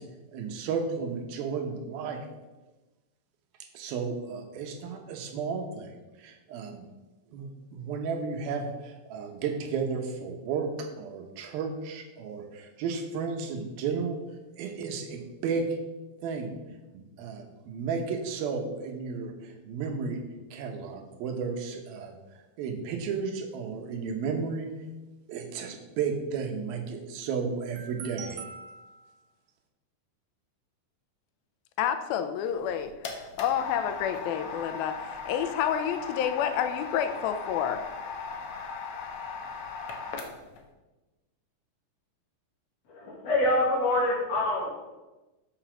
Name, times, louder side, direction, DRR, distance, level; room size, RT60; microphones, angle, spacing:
voice 1, 0.3-2.2 3.7-6.8 7.3-14.2 14.6-15.7 16.2-16.5 16.9-20.2 20.5-22.2 22.6-24.7 25.3-29.0, right 5 dB, 85° right, 4 dB, 2.9 m, -33 dB
voice 2, 31.8-37.8, left 9 dB, 85° left, 9 dB, 2.5 m, -29 dB
sound 1, 32.5-40.6, left 5 dB, 65° left, 2.0 m, -38 dB
voice 3, 42.9-44.8, left 1 dB, 50° left, -3 dB, 3.1 m, -26 dB
6.8 x 6.8 x 6.1 m, 1.1 s
omnidirectional pair, 4.2 m